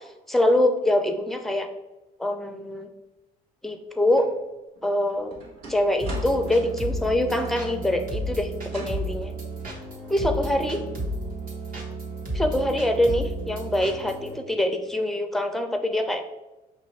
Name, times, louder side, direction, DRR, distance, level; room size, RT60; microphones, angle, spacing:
voice 1, 0.0-1.7 2.2-2.9 3.6-4.3 4.8-5.3 5.7-9.3 10.1-10.8 12.3-16.2, left 1 dB, ahead, 7 dB, 0.5 m, -24 dB
sound 1, 4.2-4.3 4.8-7.8 8.6-9.0, right 2 dB, 85° right, 1.5 m, -43 dB
sound 2, 6.0-14.3, right 1 dB, 50° right, 1.4 m, -32 dB
5.6 x 2.6 x 3.1 m, 1.0 s
supercardioid pair, 75°, 18 cm